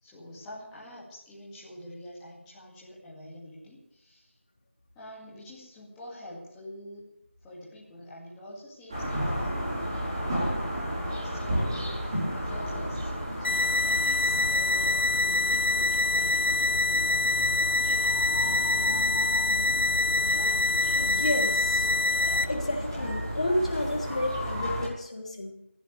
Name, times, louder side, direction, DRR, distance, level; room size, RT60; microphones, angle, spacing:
voice 1, 0.0-4.4 4.9-7.1 7.4-9.7 10.7-13.1 13.4-17.4, left 1 dB, 5° left, -7 dB, 2.3 m, -46 dB
sound 1, 8.9-24.9, equal, 20° right, 4.6 m, -33 dB
sound 2, 13.4-22.4, left 3 dB, 55° left, 1.7 m, -25 dB
voice 2, 20.9-21.9 22.4-25.5, left 1 dB, 30° left, 0 dB, 3.2 m, -31 dB
26.0 x 15.0 x 3.4 m, 0.74 s
figure-of-eight pair, 175°, 7 cm